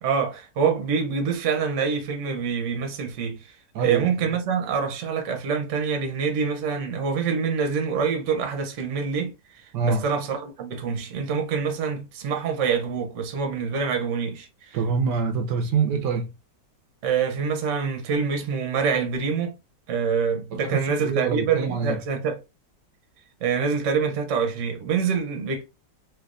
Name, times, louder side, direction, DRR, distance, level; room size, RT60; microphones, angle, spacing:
voice 1, 0.0-3.5 3.8-14.8 17.0-19.6 19.9-22.4 23.4-25.6, right 6 dB, 50° right, 1.0 m, -26 dB
voice 2, 3.7-4.1 9.7-10.0 14.7-16.3 20.5-22.0, right 5 dB, 75° right, 1.2 m, -25 dB
3.4 x 2.8 x 2.4 m
omnidirectional pair, 1.9 m